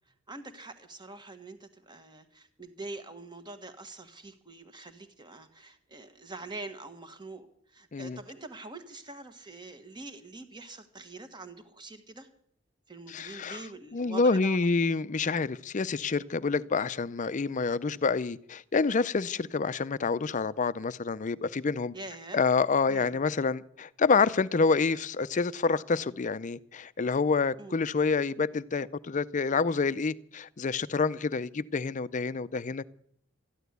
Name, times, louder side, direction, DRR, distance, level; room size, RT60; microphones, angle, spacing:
voice 1, 0.3-12.3 12.9-14.7 21.9-22.4 22.9-23.2 27.6-27.8, right 2 dB, 25° right, 9 dB, 1.4 m, -44 dB
voice 2, 13.1-13.6 13.9-21.9 22.3-32.9, left 4 dB, 40° left, 17 dB, 0.5 m, -28 dB
13.5 x 11.0 x 8.1 m, 0.68 s
head